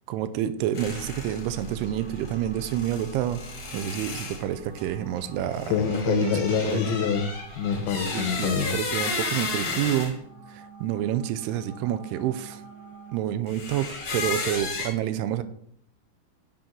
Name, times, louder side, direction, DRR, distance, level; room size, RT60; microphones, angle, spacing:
voice 1, 0.1-3.4 3.7-7.0 8.1-10.2 10.5-12.6 13.1-15.4, right 11 dB, 85° right, 11 dB, 2.6 m, -29 dB
sound 1, 0.7-10.1 13.5-14.9, left 3 dB, 45° left, 1.6 m, -34 dB
sound 2, 0.9-13.1, right 3 dB, 65° right, 2.4 m, -48 dB
voice 2, 5.7-8.8, left 7 dB, 80° left, 8 dB, 2.5 m, -26 dB
6.9 x 6.0 x 3.7 m, 0.64 s
omnidirectional pair, 4.6 m